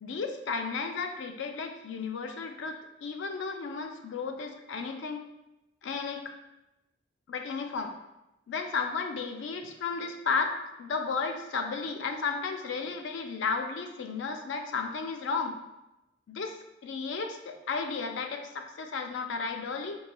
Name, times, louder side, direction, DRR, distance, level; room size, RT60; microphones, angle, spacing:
voice 1, 0.0-5.2 5.8-6.3 7.3-7.9 8.5-15.6 16.3-20.0, left 4 dB, 85° left, 5 dB, 0.4 m, -33 dB
3.6 x 3.0 x 2.2 m, 0.94 s
head